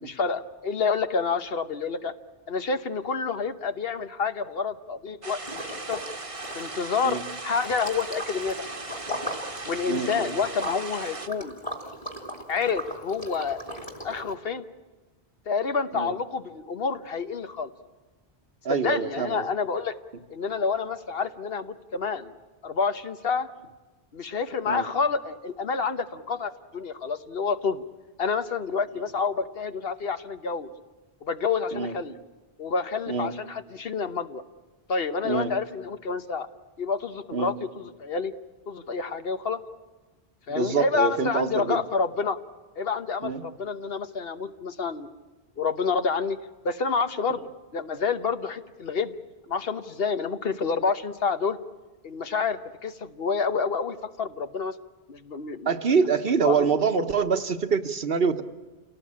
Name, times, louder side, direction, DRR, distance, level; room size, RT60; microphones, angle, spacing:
voice 1, 0.0-2.1 2.5-6.0 6.5-8.7 9.7-11.6 12.5-13.7 14.0-14.6 15.5-17.7 18.7-19.9 20.3-22.3 22.6-23.5 24.1-27.8 28.2-30.7 31.2-32.2 32.6-34.4 34.9-36.5 36.8-38.3 38.7-39.6 40.5-42.4 42.8-45.1 45.6-46.4 46.6-49.1 49.5-51.6 52.0-54.7 55.1-55.7 56.4-56.7, left 5 dB, 65° left, 10 dB, 1.3 m, -28 dB
sound 1, 5.2-11.3, right 3 dB, 35° right, 1.2 m, -38 dB
Liquid, 5.4-6.1 6.4-14.3, equal, 35° left, 3.0 m, -38 dB
voice 2, 9.9-10.3 15.9-16.1 18.6-19.5 24.6-24.9 31.7-31.9 33.1-33.3 35.2-35.5 37.3-37.5 40.5-41.8 43.2-43.4 55.7-58.4, right 5 dB, 65° right, 8 dB, 1.3 m, -25 dB
28.5 x 18.0 x 8.6 m, 1.3 s
omnidirectional pair, 1.1 m